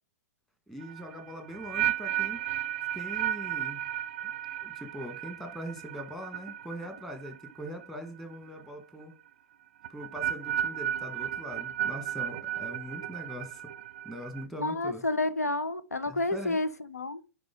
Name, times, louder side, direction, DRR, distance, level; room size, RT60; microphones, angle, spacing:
voice 1, 0.7-2.4 2.9-3.8 4.2-4.3 4.6-9.1 9.9-13.6 14.0-15.0 16.1-16.6, equal, 5° left, 1.6 m, -42 dB
sound 1, 0.8-7.9 8.2-8.6 9.8-14.4, right 11 dB, 55° right, 0.4 m, -34 dB
voice 2, 14.6-17.2, left 2 dB, 85° left, 0.7 m, -30 dB
9.7 x 3.8 x 3.8 m
figure-of-eight pair, 105°, 8 cm